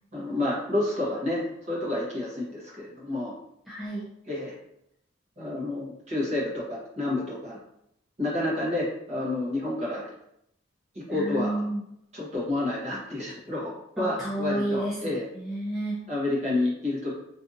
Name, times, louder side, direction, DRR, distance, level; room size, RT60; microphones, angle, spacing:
voice 1, 0.1-3.3 4.3-4.5 5.4-7.6 8.2-10.1 10.9-11.6 12.1-15.2 16.1-17.1, left 2 dB, 35° right, -6 dB, 0.9 m, -29 dB
voice 2, 3.7-4.1 11.1-11.8 14.0-16.0, right 1 dB, ahead, -8 dB, 0.4 m, -31 dB
2.6 x 2.6 x 2.4 m, 0.78 s
head